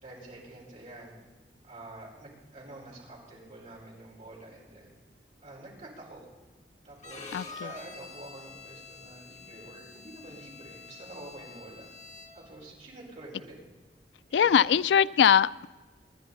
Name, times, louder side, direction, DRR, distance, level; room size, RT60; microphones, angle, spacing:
voice 1, 0.0-1.1 1.6-4.9 5.4-6.2 6.8-11.9 12.3-13.6 14.3-14.7, right 2 dB, 45° right, 4.9 m, -47 dB
Bowed string instrument, 7.0-12.6, left 4 dB, 40° left, 1.4 m, -47 dB
voice 2, 7.3-7.7 14.3-15.7, left 8 dB, 85° left, 0.3 m, -22 dB
25.5 x 10.5 x 4.1 m
head